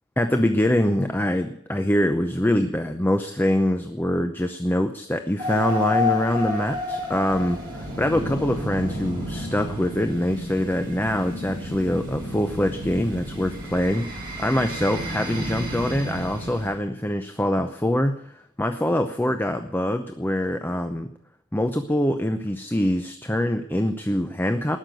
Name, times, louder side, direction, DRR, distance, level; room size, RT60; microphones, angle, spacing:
voice 1, 0.2-21.1 21.5-24.8, left 1 dB, 10° left, 7 dB, 0.7 m, -24 dB
sound 1, 5.4-16.7, left 1 dB, 20° right, 5.7 m, -31 dB
19.5 x 6.6 x 9.2 m, 0.71 s
head